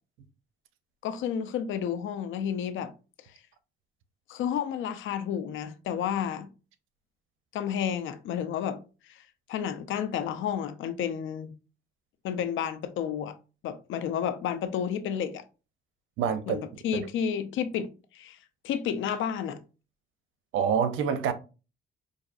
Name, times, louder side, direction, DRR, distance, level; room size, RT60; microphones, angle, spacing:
voice 1, 1.0-2.9 4.3-6.5 7.5-8.8 9.1-11.5 12.2-13.3 13.6-15.4 16.5-18.4 18.6-19.6, left 8 dB, 80° left, 0.6 m, -31 dB
voice 2, 16.2-16.6 16.9-17.0 20.5-21.3, right 7 dB, 90° right, 0.6 m, -26 dB
4.8 x 2.6 x 2.5 m
cardioid pair, 90°, 20 cm